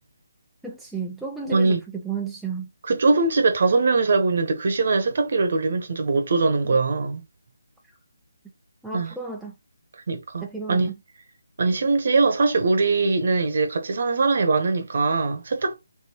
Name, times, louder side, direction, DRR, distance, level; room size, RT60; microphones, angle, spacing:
voice 1, 0.6-1.8 2.0-2.7 8.8-9.5 10.4-10.9, right 5 dB, ahead, 0.4 m, -32 dB
voice 2, 1.5-1.8 2.8-7.2 8.9-9.1 10.1-10.9 11.6-15.8, right 3 dB, 45° right, 1.0 m, -21 dB
4.0 x 3.6 x 2.9 m
figure-of-eight pair, 150°, 0 cm